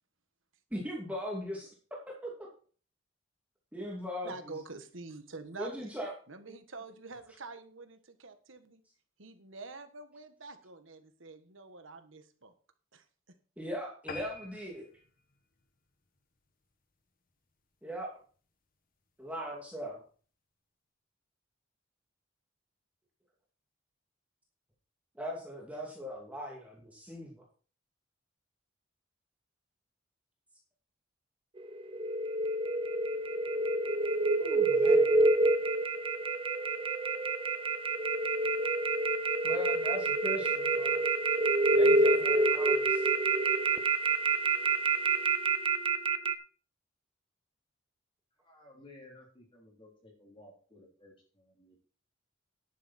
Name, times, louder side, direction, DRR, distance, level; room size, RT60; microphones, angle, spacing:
voice 1, 0.7-1.7 2.1-2.5 3.7-4.5 5.6-6.1 6.5-6.6 13.6-14.9 17.8-18.1 19.2-20.0 25.1-27.3 34.4-35.2 39.4-41.0 41.7-43.1, equal, 5° right, -2 dB, 2.6 m, -39 dB
voice 2, 4.2-5.9 6.3-8.8 9.2-12.5 12.9-13.0, right 3 dB, 80° right, 9 dB, 1.5 m, -47 dB
sound 1, 14.1-16.8 17.3-17.5 17.9-18.0 18.3-18.4 18.7-18.8, left 3 dB, 45° left, 1.2 m, -48 dB
sound 2, 31.6-46.3, right 3 dB, 25° right, 0.7 m, -27 dB
voice 3, 48.4-51.8, left 2 dB, 25° left, -1 dB, 3.5 m, -56 dB
11.0 x 9.7 x 4.3 m, 0.41 s
head